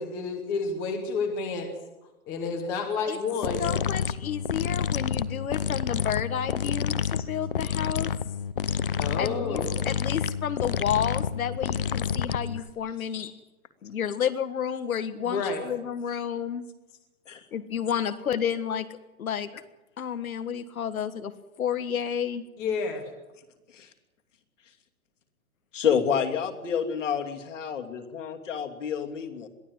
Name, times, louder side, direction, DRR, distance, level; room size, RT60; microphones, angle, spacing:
voice 1, 0.0-1.7 2.3-3.7 9.0-9.8 15.2-15.6 22.6-23.0, left 4 dB, 5° left, 5 dB, 0.8 m, -30 dB
sound 1, 3.4-12.7, left 7 dB, 40° left, 0.7 m, -29 dB
voice 2, 3.6-8.1 9.2-13.3 13.8-16.7 17.5-19.5 20.0-21.3 21.6-22.4, left 8 dB, 75° left, 11 dB, 1.7 m, -31 dB
voice 3, 25.7-29.5, left 7 dB, 60° left, 4 dB, 3.0 m, -29 dB
22.0 x 15.0 x 9.6 m, 1.0 s
hypercardioid pair, 175°, 42 cm